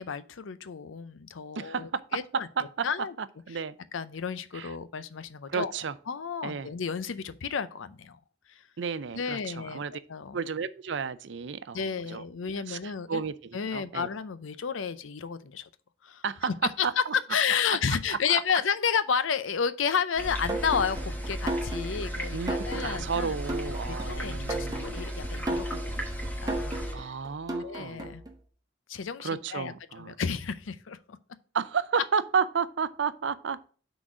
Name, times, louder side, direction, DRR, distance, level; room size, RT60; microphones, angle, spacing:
voice 1, 0.0-2.5 2.8-3.1 3.9-5.7 6.1-8.2 8.5-8.6 9.1-9.8 10.1-10.4 11.7-13.2 13.5-15.7 16.0-17.0 17.3-23.3 23.9-27.1 27.6-28.2 28.9-31.2, left 6 dB, 80° left, 0.5 m, -32 dB
voice 2, 1.6-2.0 2.6-2.9 3.5-3.8 4.5-4.7 5.5-5.9 6.4-6.7 8.8-9.9 10.3-12.2 12.7-13.3 13.7-14.1 16.2-16.5 16.8-16.9 17.9-18.4 22.3-24.9 26.9-28.1 29.2-30.2 31.5-33.7, right 6 dB, 60° right, 0.5 m, -32 dB
sound 1, 20.2-26.9, equal, 10° left, 1.1 m, -35 dB
sound 2, 20.5-28.3, right 1 dB, 20° right, 1.0 m, -35 dB
6.2 x 4.0 x 6.0 m
head